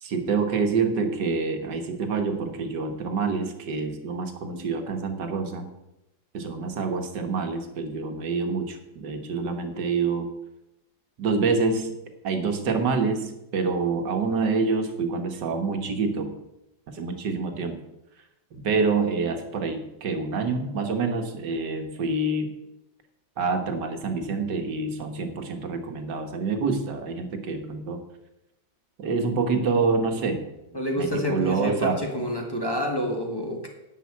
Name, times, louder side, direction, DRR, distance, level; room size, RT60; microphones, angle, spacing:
voice 1, 0.0-5.7 6.3-10.3 11.2-11.9 12.2-16.4 16.9-17.8 18.5-22.6 23.4-28.0 29.0-30.5 30.9-32.0, right 4 dB, 65° right, 6 dB, 1.9 m, -27 dB
voice 2, 30.7-33.7, equal, 15° left, 1 dB, 1.6 m, -28 dB
10.5 x 5.5 x 8.4 m, 0.92 s
omnidirectional pair, 2.1 m